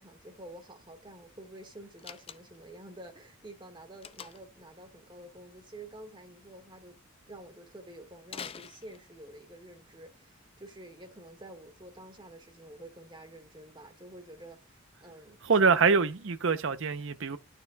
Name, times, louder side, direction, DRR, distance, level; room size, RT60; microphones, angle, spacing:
voice 1, 0.0-7.0 7.3-15.4, right 1 dB, 20° right, 1.5 m, -49 dB
Slam, 2.0-2.7 4.0-4.6 8.3-9.4, left 7 dB, 25° left, 0.4 m, -44 dB
voice 2, 15.4-17.4, right 5 dB, 55° right, 0.6 m, -25 dB
11.5 x 6.7 x 2.2 m
head